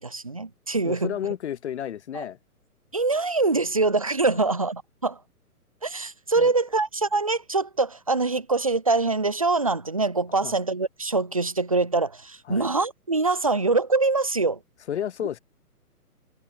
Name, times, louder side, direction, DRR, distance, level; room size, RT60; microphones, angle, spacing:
voice 1, 0.0-1.1 2.1-2.2 2.9-5.2 5.8-14.6, right 3 dB, 25° right, 0.4 m, -24 dB
voice 2, 0.8-2.4 4.3-4.5 6.4-6.5 10.4-10.5 12.5-12.7 14.9-15.4, left 10 dB, 45° left, 0.8 m, -32 dB
figure-of-eight pair, 135°, 46 cm